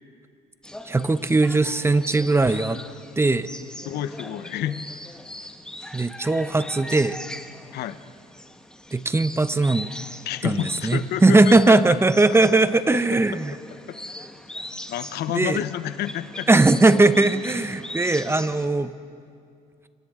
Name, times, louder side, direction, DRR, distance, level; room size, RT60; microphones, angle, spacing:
sound 1, 0.6-18.7, left 1 dB, 5° left, 1.2 m, -40 dB
voice 1, 0.8-2.8 3.2-3.5 5.9-7.2 8.9-9.9 10.4-13.5 15.3-15.6 16.5-18.9, right 2 dB, 15° right, 12 dB, 0.7 m, -19 dB
voice 2, 3.8-4.8 7.7-8.0 10.3-11.8 13.9-14.0 14.9-16.5, left 11 dB, 75° left, 13 dB, 0.8 m, -29 dB
28.5 x 25.5 x 3.7 m, 2.4 s
cardioid pair, 110°, 17 cm